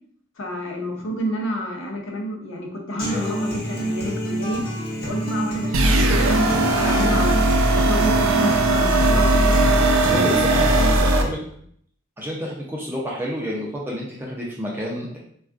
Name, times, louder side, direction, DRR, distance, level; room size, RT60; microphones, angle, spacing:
voice 1, 0.4-4.6 5.0-7.4 7.7-9.8, equal, 75° left, 1 dB, 0.7 m, -29 dB
Human voice / Acoustic guitar, 3.0-11.0, right 1 dB, 45° left, 0.9 m, -27 dB
sound 1, 5.7-11.2, right 2 dB, 85° right, 0.4 m, -18 dB
voice 2, 10.0-11.4 12.2-15.2, equal, 10° right, -4 dB, 0.4 m, -29 dB
3.5 x 2.3 x 2.4 m, 0.63 s
head